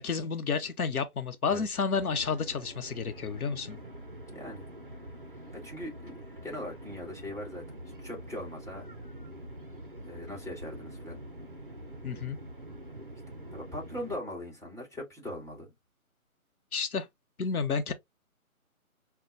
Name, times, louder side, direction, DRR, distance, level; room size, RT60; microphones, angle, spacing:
voice 1, 0.0-3.8 12.0-12.4 16.7-17.1 17.4-17.9, left 5 dB, 80° left, 0.8 m, -31 dB
sound 1, 1.9-14.2, right 1 dB, 40° right, 0.5 m, -45 dB
voice 2, 4.3-4.7 5.6-6.1 6.4-7.6 8.0-8.8 10.1-11.2 13.5-15.7, left 1 dB, 10° left, 1.9 m, -40 dB
5.5 x 2.2 x 2.5 m
figure-of-eight pair, 165°, 43 cm